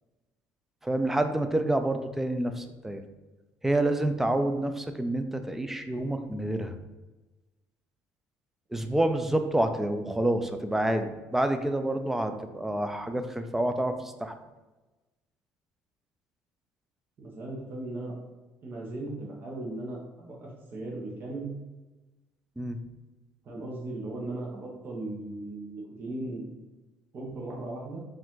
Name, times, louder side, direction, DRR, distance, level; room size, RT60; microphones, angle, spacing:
voice 1, 0.8-3.0 3.6-6.8 8.7-14.3 22.6-22.8, right 1 dB, 5° right, 8 dB, 0.3 m, -28 dB
voice 2, 17.2-18.2 18.6-21.5 23.4-26.4 27.1-28.0, right 2 dB, 35° right, -2 dB, 0.9 m, -37 dB
4.8 x 2.5 x 3.7 m, 1.1 s
cardioid pair, 145°, 6 cm